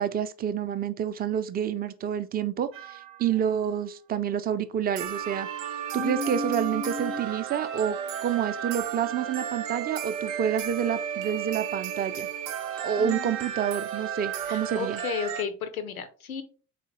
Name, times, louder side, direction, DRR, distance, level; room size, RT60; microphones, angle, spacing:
voice 1, 0.0-5.5 5.9-12.3 12.8-15.0, right 9 dB, 25° right, 12 dB, 0.3 m, -28 dB
sound 1, 2.7-3.3 5.0-15.4, right 9 dB, 70° right, 0.5 m, -33 dB
voice 2, 5.9-7.2 13.0-13.4 14.5-16.4, left 6 dB, 90° left, 10 dB, 0.5 m, -33 dB
3.9 x 2.8 x 2.9 m, 0.38 s
figure-of-eight pair, 50°, 41 cm